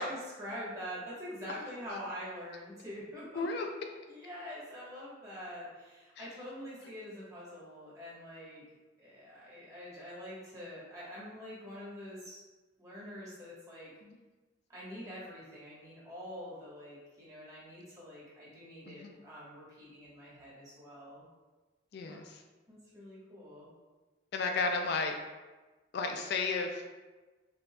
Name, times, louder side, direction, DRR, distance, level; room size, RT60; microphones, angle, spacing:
voice 1, 0.0-3.4 4.1-8.6 9.0-12.4 12.8-13.9 14.7-21.2 22.1-22.2 22.7-23.7, equal, 20° right, -8 dB, 1.1 m, -45 dB
voice 2, 3.4-3.7 6.2-6.3 14.0-14.2 18.9-19.1 21.9-22.4 24.3-25.1 25.9-26.8, left 4 dB, 55° left, 3 dB, 0.3 m, -33 dB
5.3 x 2.5 x 2.2 m, 1.2 s
head